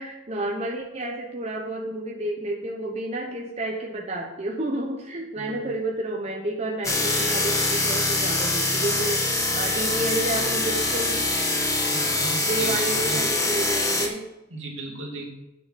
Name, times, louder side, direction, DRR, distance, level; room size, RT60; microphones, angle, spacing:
voice 1, 0.0-11.3 12.4-14.3, right 1 dB, 35° right, -1 dB, 1.1 m, -30 dB
sound 1, 6.8-14.1, left 2 dB, 15° left, 1.5 m, -24 dB
voice 2, 11.9-13.2 14.5-15.3, right 2 dB, 75° right, -1 dB, 2.8 m, -36 dB
9.3 x 6.7 x 6.9 m, 0.97 s
head